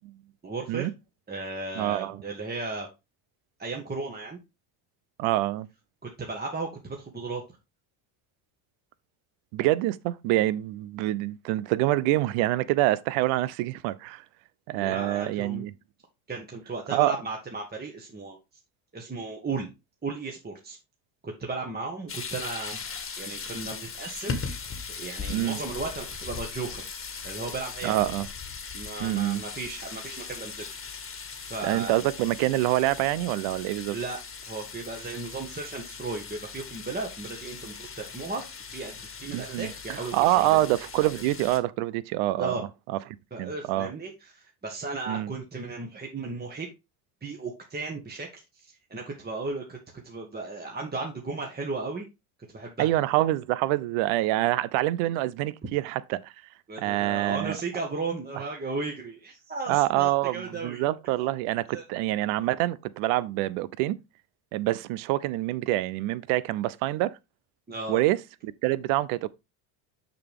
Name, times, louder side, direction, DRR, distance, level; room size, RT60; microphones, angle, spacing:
voice 1, 0.4-0.9 1.3-2.9 3.6-4.4 6.0-7.4 14.7-15.7 16.3-18.4 18.9-19.7 20.0-20.8 21.2-22.8 23.2-24.6 24.9-26.8 27.2-28.0 28.7-30.6 31.5-31.9 33.9-34.2 34.5-38.4 38.7-40.6 42.4-42.6 43.3-46.7 47.2-48.3 48.5-52.0 52.5-52.9 56.7-60.8 61.7-61.8 67.7-68.0, right 3 dB, 20° right, 1.6 m, -35 dB
voice 2, 1.8-2.2 5.2-5.7 9.5-14.2 14.7-15.7 16.9-17.2 25.3-25.6 27.8-28.3 29.0-29.4 31.6-34.0 39.3-42.5 42.9-43.0 43.4-43.9 45.1-45.3 52.8-56.3 56.8-57.6 59.7-64.0 64.5-67.1 67.9-69.3, right 16 dB, 70° right, 0.8 m, -26 dB
sound 1, 22.1-41.6, left 5 dB, 25° left, 1.6 m, -39 dB
6.6 x 6.2 x 3.5 m
supercardioid pair, 100°, 50 cm